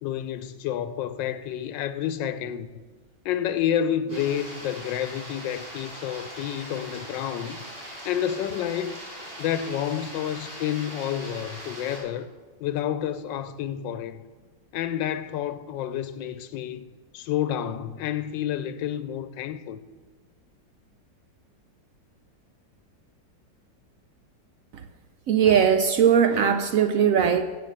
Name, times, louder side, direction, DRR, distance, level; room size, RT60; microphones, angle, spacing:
voice 1, 0.0-2.7 3.2-7.6 8.0-9.0 9.4-12.3 12.6-14.2 14.7-16.9 17.1-19.8, left 10 dB, 85° left, 1.3 m, -29 dB
sound 1, 4.1-12.0, equal, 30° right, 5.1 m, -41 dB
voice 2, 25.3-27.4, right 8 dB, 75° right, 0.7 m, -20 dB
14.5 x 5.7 x 7.9 m
omnidirectional pair, 1.9 m